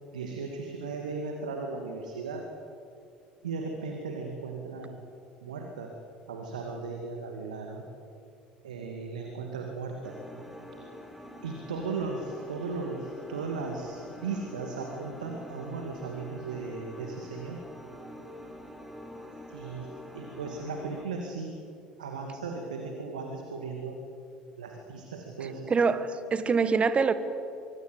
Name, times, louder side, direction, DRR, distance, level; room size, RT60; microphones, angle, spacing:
voice 1, 0.1-2.5 3.4-5.0 5.4-5.9 6.3-7.8 8.6-10.2 11.4-17.6 19.5-21.5 22.0-24.0 24.6-25.7, right 4 dB, 75° right, 3 dB, 2.3 m, -36 dB
sound 1, 10.0-21.1, equal, 5° right, 3.8 m, -45 dB
voice 2, 25.7-27.1, right 5 dB, 30° right, 12 dB, 1.8 m, -24 dB
24.0 x 24.0 x 8.2 m, 2.6 s
figure-of-eight pair, 65°, 4 cm